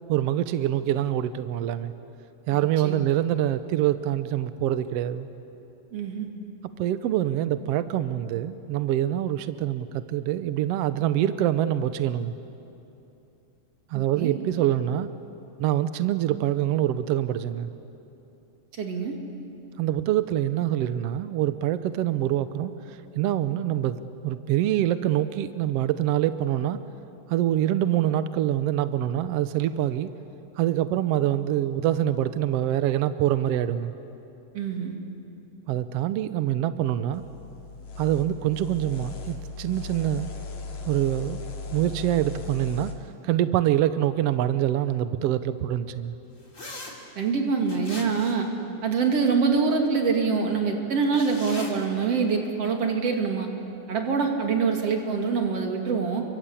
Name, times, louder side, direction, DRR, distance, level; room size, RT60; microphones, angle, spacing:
voice 1, 0.1-1.9 2.5-5.3 6.8-12.3 13.9-15.1 15.6-17.7 19.8-26.8 27.3-30.1 30.6-33.9 35.7-37.2 38.0-40.3 40.9-41.4 41.7-42.9 43.2-46.1, right 12 dB, 85° right, 12 dB, 1.4 m, -25 dB
voice 2, 2.5-3.0 5.9-6.3 13.9-14.3 18.8-19.1 34.6-35.0 47.2-48.5 48.8-53.5 53.9-56.2, right 5 dB, 50° right, 2 dB, 3.4 m, -25 dB
sound 1, 37.1-42.9, left 4 dB, 80° left, 3.9 m, -37 dB
sound 2, 46.5-46.9 47.7-48.5 51.0-51.7, left 2 dB, 25° left, 3.3 m, -40 dB
30.0 x 23.5 x 8.5 m, 2.9 s
omnidirectional pair, 3.8 m